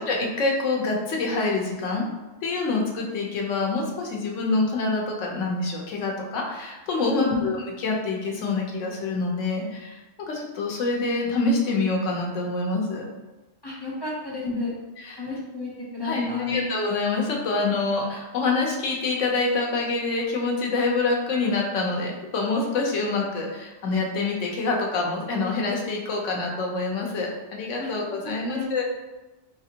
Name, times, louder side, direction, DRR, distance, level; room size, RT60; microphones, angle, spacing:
voice 1, 0.0-2.0 2.4-10.0 10.3-13.1 14.4-14.6 15.0-15.2 16.0-28.8, left 3 dB, 90° left, -1 dB, 1.1 m, -26 dB
voice 2, 7.1-7.5 13.6-14.7 15.2-16.6 27.8-27.9 28.2-28.8, left 3 dB, 25° left, -5 dB, 0.6 m, -31 dB
4.9 x 2.5 x 2.8 m, 1.1 s
omnidirectional pair, 1.2 m